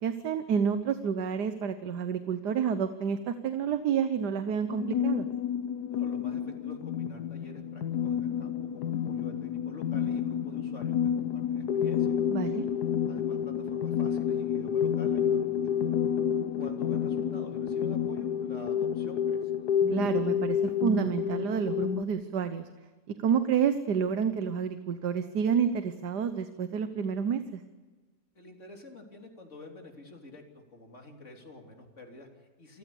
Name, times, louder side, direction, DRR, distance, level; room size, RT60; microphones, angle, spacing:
voice 1, 0.0-5.3 12.3-12.7 19.9-22.6 23.2-27.6, right 7 dB, 85° right, 10 dB, 1.6 m, -29 dB
sound 1, 4.7-22.0, left 8 dB, 75° left, 1.5 m, -29 dB
voice 2, 5.9-12.2 13.1-15.8 16.6-19.5 28.4-32.8, left 2 dB, 45° left, 2 dB, 3.6 m, -48 dB
26.5 x 15.5 x 8.5 m, 1.4 s
omnidirectional pair, 1.7 m